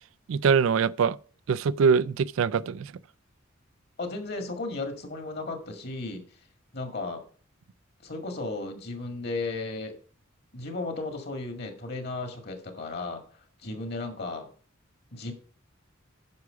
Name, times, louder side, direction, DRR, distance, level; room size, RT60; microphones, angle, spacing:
voice 1, 0.3-1.2 1.5-2.9, right 6 dB, 70° right, 0.3 m, -23 dB
voice 2, 4.0-6.2 6.7-7.2 8.0-10.0 10.5-13.2 13.6-14.5 15.1-15.3, left 3 dB, 50° left, 1.9 m, -34 dB
9.6 x 6.0 x 4.8 m
head